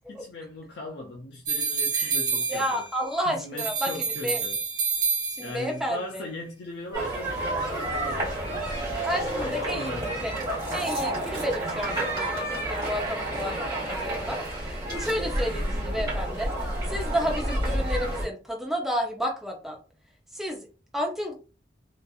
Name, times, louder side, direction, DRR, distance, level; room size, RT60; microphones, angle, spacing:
voice 1, 0.1-2.8 3.2-4.6 5.4-8.9 9.4-10.4, left 1 dB, 65° left, 0.4 m, -39 dB
sound 1, 1.4-3.1 3.6-5.8, right 5 dB, 50° right, 1.0 m, -28 dB
voice 2, 2.5-3.9 4.2-4.4 5.4-6.2 9.0-9.9 10.2-10.3 10.7-16.5 16.9-19.8 20.3-21.3, equal, ahead, 0.5 m, -31 dB
sound 2, 6.9-18.3, right 1 dB, 25° right, 1.4 m, -30 dB
2.8 x 2.4 x 2.3 m
head